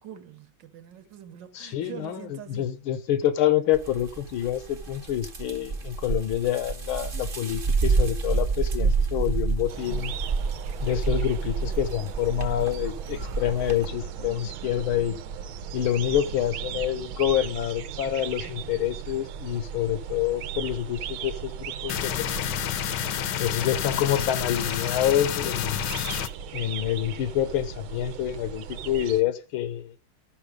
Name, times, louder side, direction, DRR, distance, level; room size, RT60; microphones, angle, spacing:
voice 1, 0.0-2.7, right 10 dB, 65° right, 1.6 m, -44 dB
voice 2, 1.5-10.1 10.8-15.2 15.7-22.6 23.4-25.9 26.5-29.9, left 11 dB, 85° left, 1.8 m, -27 dB
sound 1, 3.7-13.9, right 4 dB, 35° right, 0.9 m, -28 dB
sound 2, 9.7-29.2, right 8 dB, 80° right, 1.6 m, -37 dB
sound 3, 21.9-26.3, left 10 dB, 65° left, 1.2 m, -29 dB
12.0 x 5.8 x 5.1 m
omnidirectional pair, 2.2 m